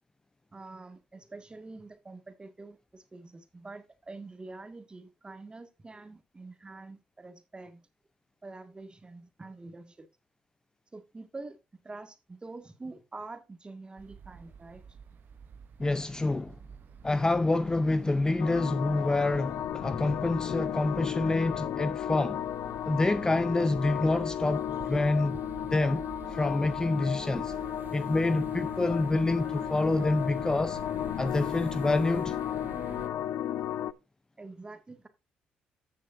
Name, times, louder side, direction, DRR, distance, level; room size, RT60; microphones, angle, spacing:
voice 1, 0.5-7.9 8.4-10.1 10.9-11.6 11.8-14.8 34.4-35.1, right 3 dB, 25° right, 1.8 m, -46 dB
sound 1, 14.0-33.1, right 7 dB, 55° right, 0.8 m, -48 dB
voice 2, 15.8-16.6 17.0-22.4 22.8-25.4 25.7-27.5 27.9-30.8 31.2-32.4, left 2 dB, 20° left, 0.5 m, -27 dB
sound 2, 18.4-33.9, left 11 dB, 70° left, 0.5 m, -34 dB
14.5 x 6.6 x 2.6 m
supercardioid pair, 60°, 4 cm